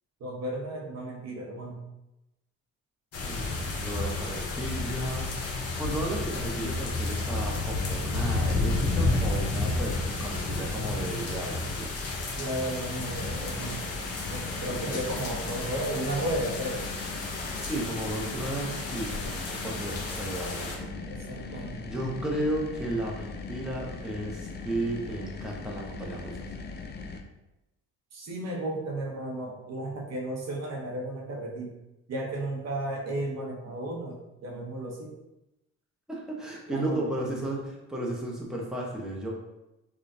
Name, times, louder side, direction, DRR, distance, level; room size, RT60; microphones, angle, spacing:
voice 1, 0.2-1.8 12.4-13.9 14.3-16.8 21.1-21.9 28.1-31.7 32.1-35.2 36.7-37.0, right 1 dB, 60° right, 0 dB, 0.9 m, -34 dB
sound 1, 3.1-20.8, left 3 dB, 55° left, 0.9 m, -31 dB
voice 2, 3.2-11.9 14.7-15.1 17.6-26.5 36.1-39.3, right 1 dB, ahead, -3 dB, 0.8 m, -34 dB
sound 2, 13.0-27.2, left 4 dB, 35° left, 0.4 m, -40 dB
5.0 x 2.4 x 2.6 m, 0.94 s
cardioid pair, 90°, 30 cm